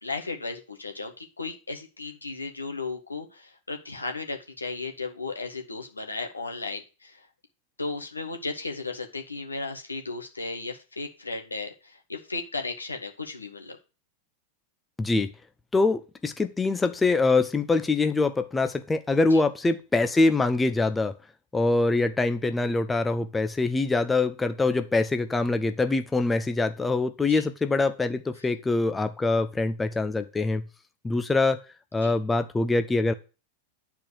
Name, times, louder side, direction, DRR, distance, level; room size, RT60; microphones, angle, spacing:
voice 1, 0.0-7.3 7.8-13.8 19.3-19.4 27.3-27.4 32.0-32.1, left 3 dB, 80° left, 1.7 m, -35 dB
voice 2, 15.0-15.3 15.7-21.1 21.5-30.6 31.0-31.6 31.9-33.1, left 3 dB, 10° left, 0.8 m, -24 dB
10.0 x 4.5 x 6.7 m
figure-of-eight pair, 90°, 0 cm